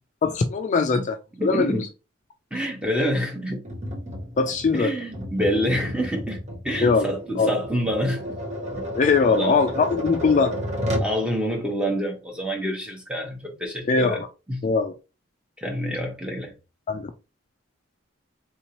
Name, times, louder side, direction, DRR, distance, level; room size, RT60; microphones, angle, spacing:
voice 1, 0.2-1.2 1.4-1.8 4.4-4.9 6.8-7.1 7.4-7.5 8.9-10.5 13.9-14.3 14.6-14.9 16.9-17.1, left 4 dB, 40° left, 0.3 m, -21 dB
voice 2, 1.4-1.9 2.5-3.6 4.7-6.4 6.6-8.2 8.7-9.0 9.2-9.6 11.0-14.2 14.5-14.6 15.6-16.5, equal, 5° right, 1.0 m, -27 dB
Tap, 3.7-11.2, equal, 35° right, 0.8 m, -32 dB
3.7 x 2.7 x 2.9 m
head